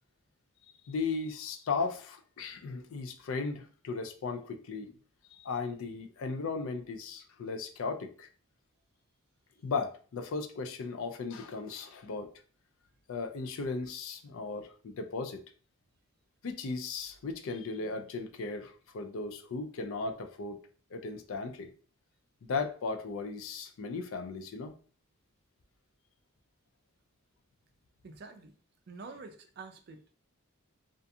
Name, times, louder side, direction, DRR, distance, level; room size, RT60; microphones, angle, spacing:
voice 1, 0.9-4.9 5.3-8.3 9.6-12.3 13.1-15.4 16.4-20.6 20.9-21.7 22.5-24.7, left 4 dB, 65° left, 7 dB, 0.4 m, -36 dB
voice 2, 28.0-28.5 28.9-30.1, right 4 dB, 45° right, 6 dB, 0.3 m, -47 dB
2.4 x 2.3 x 2.6 m, 0.41 s
head